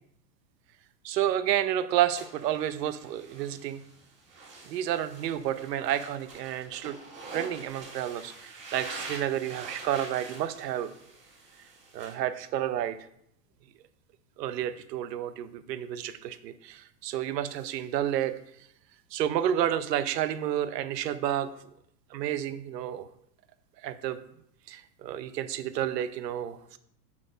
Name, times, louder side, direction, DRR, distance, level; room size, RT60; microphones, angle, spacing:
voice 1, 1.0-3.8 4.6-7.0 7.3-10.9 11.9-13.0 14.4-18.3 19.1-21.5 22.1-23.1 23.8-24.2 24.7-26.8, right 11 dB, 75° right, 12 dB, 0.8 m, -30 dB
sound 1, 2.2-12.1, right 3 dB, 25° right, 2.1 m, -45 dB
7.4 x 4.1 x 4.9 m, 0.73 s
supercardioid pair, 145°, 49 cm